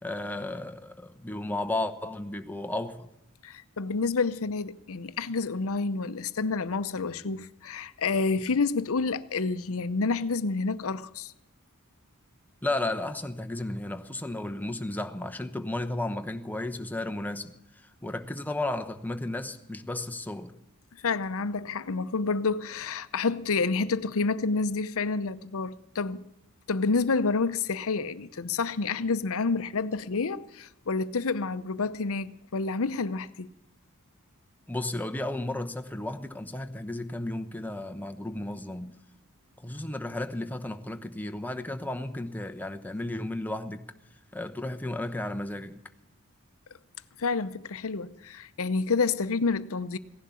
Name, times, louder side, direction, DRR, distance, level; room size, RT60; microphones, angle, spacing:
voice 1, 0.0-3.1 12.6-20.5 34.7-38.9 39.6-43.8 44.3-45.7, left 2 dB, 10° left, 0.9 m, -33 dB
voice 2, 3.4-11.3 21.0-26.2 26.7-33.5 47.2-50.0, left 4 dB, 65° left, 0.7 m, -29 dB
16.5 x 11.0 x 7.0 m
head